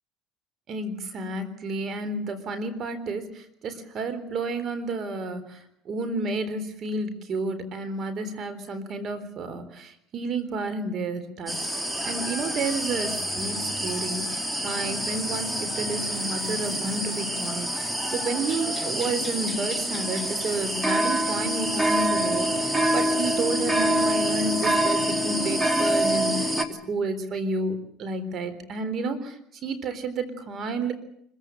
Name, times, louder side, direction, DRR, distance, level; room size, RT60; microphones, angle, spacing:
voice 1, 0.7-30.9, right 3 dB, 50° right, 11 dB, 3.8 m, -31 dB
sound 1, 11.5-26.7, right 1 dB, 10° right, 2.7 m, -26 dB
25.5 x 15.5 x 9.1 m, 0.71 s
supercardioid pair, 95°, 0 cm